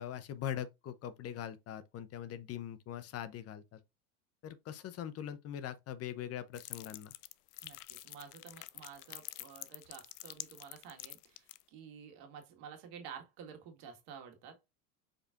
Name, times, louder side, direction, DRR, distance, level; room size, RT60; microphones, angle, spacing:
voice 1, 0.0-3.8 4.4-7.1, left 10 dB, 30° left, 0.6 m, -42 dB
sound 1, 6.5-11.6, left 17 dB, 75° left, 0.6 m, -47 dB
voice 2, 7.6-14.6, right 7 dB, 55° right, 1.8 m, -51 dB
5.1 x 4.1 x 2.4 m
hypercardioid pair, 95°, 46 cm